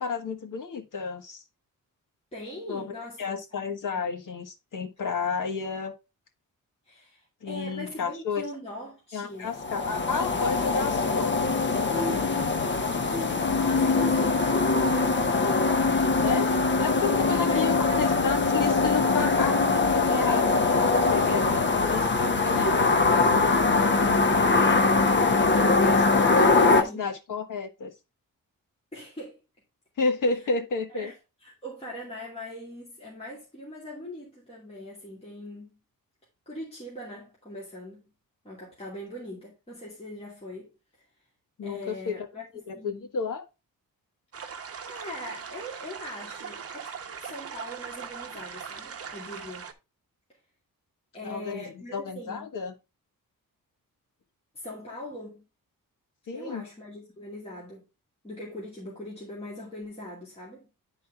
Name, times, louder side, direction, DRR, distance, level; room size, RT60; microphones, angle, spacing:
voice 1, 0.0-1.4 2.7-5.9 7.4-8.4 9.1-11.4 11.7-12.5 16.2-19.6 19.8-20.6 21.1-23.6 25.4-27.9 30.0-31.1 41.6-42.2 42.7-43.4 51.2-52.7 56.3-56.6, left 5 dB, 65° left, 1.6 m, -32 dB
voice 2, 2.3-3.4 3.9-4.1 6.9-9.5 13.6-15.2 17.2-18.2 21.2-21.4 22.3-23.3 26.6-27.1 28.9-29.4 30.9-31.1 31.4-35.8 36.5-38.1 38.4-40.7 41.6-43.1 44.8-49.7 51.1-52.5 54.5-55.4 56.3-57.9 58.2-60.7, left 1 dB, 15° left, 2.3 m, -41 dB
sound 1, 9.5-26.8, left 3 dB, 35° left, 0.8 m, -22 dB
sound 2, 44.3-49.7, right 6 dB, 45° right, 0.9 m, -40 dB
10.5 x 4.1 x 3.4 m
wide cardioid pair, 170°, 34 cm